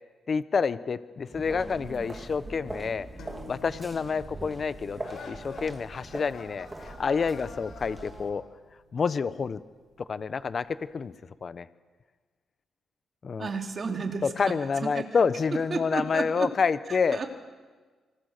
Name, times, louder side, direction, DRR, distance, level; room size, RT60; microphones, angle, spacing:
voice 1, 0.3-3.1 3.5-5.0 5.3-8.4 8.9-9.6 10.1-10.7 10.9-11.1 11.4-11.7 13.2-13.5 14.2-17.2, left 5 dB, 45° left, 14 dB, 1.0 m, -28 dB
sound 1, 1.3-8.3, right 2 dB, 20° right, 2.6 m, -42 dB
sound 2, 3.2-10.7, left 1 dB, 80° left, 3.8 m, -55 dB
sound 3, 5.0-8.5, left 5 dB, 60° left, 7.0 m, -46 dB
voice 2, 13.4-15.1 15.7-16.5 16.9-17.3, right 4 dB, 40° right, 4 dB, 3.1 m, -33 dB
26.5 x 25.0 x 6.7 m, 1.4 s
cardioid pair, 100°, 0 cm